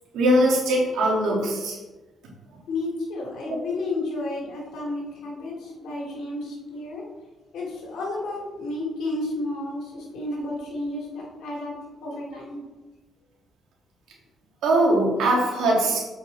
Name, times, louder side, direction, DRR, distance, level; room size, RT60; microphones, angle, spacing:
voice 1, 0.1-1.8 14.6-16.0, right 1 dB, 85° right, -3 dB, 2.5 m, -21 dB
voice 2, 2.7-7.0 7.5-11.7 12.0-12.6, left 2 dB, 75° left, -2 dB, 2.7 m, -31 dB
7.6 x 5.7 x 4.1 m, 1.2 s
cardioid pair, 90°, 0 cm